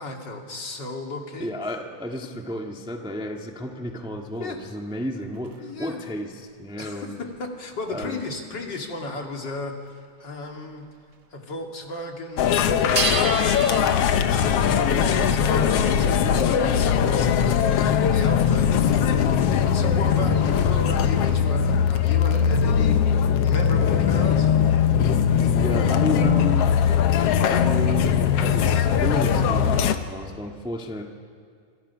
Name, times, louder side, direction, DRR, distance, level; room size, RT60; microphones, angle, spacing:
voice 1, 0.0-1.5 4.4-4.6 5.6-6.0 6.8-10.9 11.3-12.8 13.2-24.5, left 2 dB, 40° left, 2 dB, 2.6 m, -34 dB
voice 2, 1.4-7.2 7.9-8.2 25.3-27.0 27.4-31.0, equal, 10° right, 2 dB, 0.3 m, -32 dB
sound 1, 3.9-5.8 6.4-8.1 8.7-9.0 9.5-9.6 9.8-9.9 10.2-11.2 11.5-12.1 12.4-20.3, right 6 dB, 55° right, 1.2 m, -36 dB
sound 2, 12.4-29.9, left 8 dB, 65° left, 1.7 m, -20 dB
27.5 x 26.5 x 5.7 m, 2.2 s
omnidirectional pair, 3.5 m